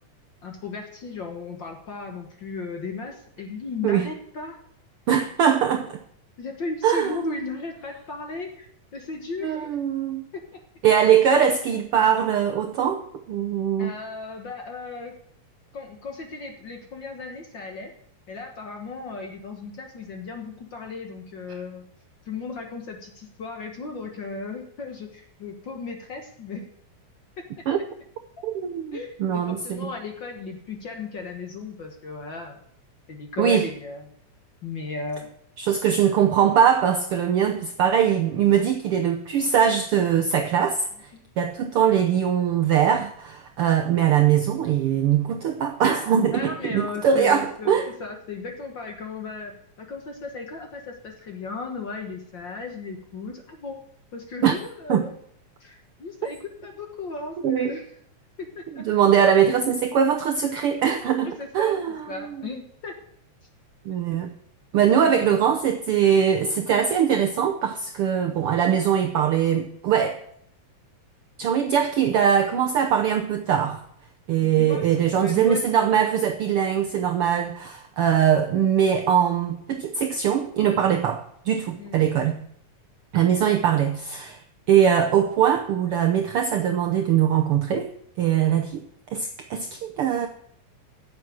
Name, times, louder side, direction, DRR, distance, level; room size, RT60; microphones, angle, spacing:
voice 1, 0.4-4.6 5.5-5.6 6.4-9.8 10.3-10.4 13.8-15.1 15.7-17.9 18.3-21.9 22.2-26.7 27.4-27.5 28.9-32.6 33.1-34.1 34.6-35.3 41.1-41.2 46.3-53.8 54.1-55.2 55.6-57.9 58.4-58.8 61.2-61.8 62.1-63.0 65.0-65.4 74.4-75.9 81.8-82.0, left 4 dB, 50° left, 1.6 m, -36 dB
voice 2, 5.1-6.0 6.8-7.2 9.4-10.2 10.8-13.9 27.7-27.8 28.4-29.9 33.4-33.7 35.6-40.9 41.4-47.8 54.4-54.5 54.9-55.0 57.4-57.8 58.8-62.0 63.8-64.3 64.7-70.2 71.4-73.8 74.3-82.4 83.1-84.4 84.7-87.9 88.2-88.8 89.1-90.3, right 8 dB, 70° right, 1.3 m, -21 dB
9.8 x 7.7 x 9.3 m
omnidirectional pair, 3.5 m